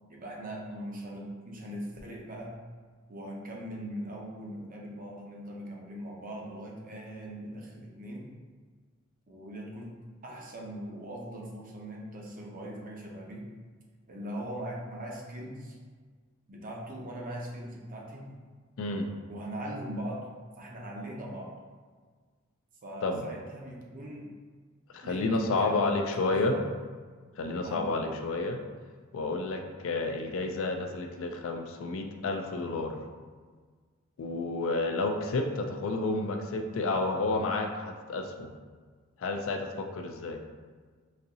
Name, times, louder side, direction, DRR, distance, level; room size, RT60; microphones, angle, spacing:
voice 1, 0.1-2.6 3.1-8.3 9.3-9.9 10.2-13.5 14.1-15.8 16.5-18.4 19.3-20.3 20.6-21.6 22.8-24.3 25.0-25.3 25.5-26.7 27.6-27.8, right 1 dB, 40° right, -1 dB, 0.6 m, -40 dB
voice 2, 24.9-26.5 27.4-28.6 29.1-33.0 34.2-38.5 39.2-40.4, left 3 dB, 65° left, 5 dB, 0.4 m, -30 dB
4.0 x 2.7 x 2.6 m, 1.5 s
head